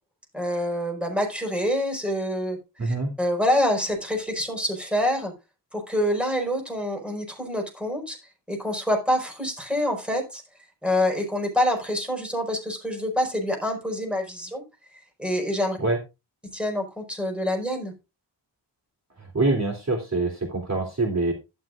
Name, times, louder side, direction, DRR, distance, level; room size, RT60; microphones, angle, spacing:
voice 1, 0.3-5.3 5.7-8.2 8.5-10.4 10.8-14.6 15.2-15.8 16.5-17.9, left 1 dB, ahead, 2 dB, 4.9 m, -26 dB
voice 2, 2.8-3.1 15.8-16.0 19.3-21.3, right 2 dB, 35° right, 1 dB, 3.3 m, -24 dB
12.0 x 11.5 x 2.5 m, 0.26 s
wide cardioid pair, 115°, 44 cm